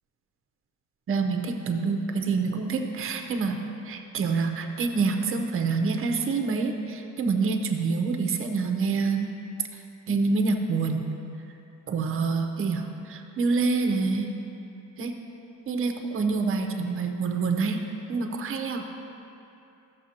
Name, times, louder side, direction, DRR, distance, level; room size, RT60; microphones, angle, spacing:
voice 1, 1.1-3.6 3.9-9.3 10.1-11.1 11.9-14.3 15.0-15.1 15.7-17.8 18.1-18.9, right 4 dB, 45° right, 4 dB, 0.7 m, -26 dB
13.5 x 6.8 x 2.8 m, 2.8 s
cardioid pair, 175°, 30 cm